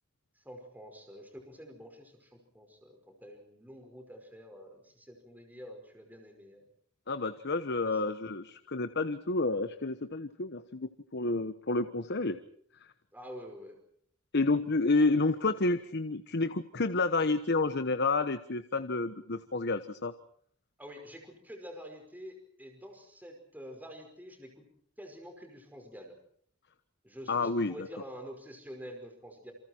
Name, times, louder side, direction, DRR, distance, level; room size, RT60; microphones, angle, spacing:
voice 1, 0.4-6.7 7.8-8.1 13.1-13.8 20.8-24.6 25.0-26.2 27.0-29.5, equal, 10° right, 3 dB, 5.3 m, -48 dB
voice 2, 7.1-12.4 14.3-20.1 27.3-27.7, left 3 dB, 55° left, 11 dB, 1.2 m, -30 dB
29.0 x 28.5 x 4.5 m, 0.62 s
head